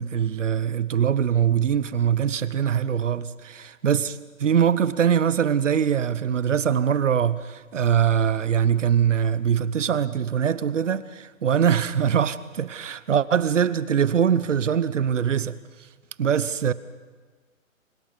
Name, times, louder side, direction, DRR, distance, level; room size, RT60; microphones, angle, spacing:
voice 1, 0.0-15.6 16.2-16.7, right 8 dB, 60° right, 1.1 m, -22 dB
25.5 x 24.0 x 5.3 m
hypercardioid pair, 160°, 41 cm